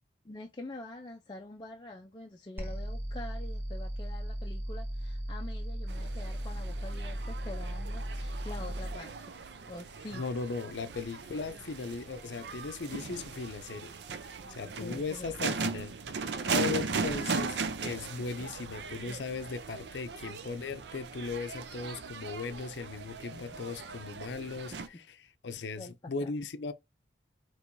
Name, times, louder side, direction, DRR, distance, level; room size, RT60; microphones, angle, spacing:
voice 1, 0.2-9.4 9.7-10.2 14.4-15.5 23.3-23.6 24.7-24.8 25.8-26.3, left 2 dB, 25° left, 0.4 m, -46 dB
sound 1, 2.6-9.0, equal, 10° right, 0.9 m, -36 dB
sound 2, 5.9-24.9, right 4 dB, 70° right, 0.5 m, -38 dB
voice 2, 10.1-14.0 14.5-15.9 16.5-26.7, left 4 dB, 80° left, 0.5 m, -38 dB
4.4 x 3.1 x 2.6 m
head